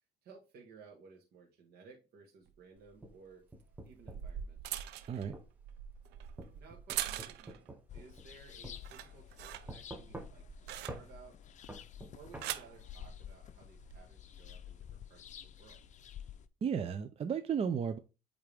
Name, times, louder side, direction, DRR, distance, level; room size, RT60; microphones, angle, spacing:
voice 1, 0.2-3.5 3.8-4.8 6.6-11.4 12.2-15.8, right 5 dB, 70° right, -1 dB, 1.7 m, -58 dB
sound 1, 2.5-2.6 3.7-7.7 8.1-8.5 8.7-11.3 12.1-12.8 13.7-14.0, right 11 dB, 85° right, 0.6 m, -43 dB
sound 2, 2.9-4.4 5.3-5.5 6.4-8.4 8.6-8.8 9.7-10.6 10.9-11.1 11.7-12.5, right 1 dB, 10° right, 1.0 m, -47 dB
sound 3, 7.9-16.5, left 9 dB, 45° left, 0.6 m, -51 dB
voice 2, 16.6-18.0, right 7 dB, 35° right, 9 dB, 0.5 m, -34 dB
8.6 x 3.6 x 3.5 m, 0.29 s
cardioid pair, 110°, 17 cm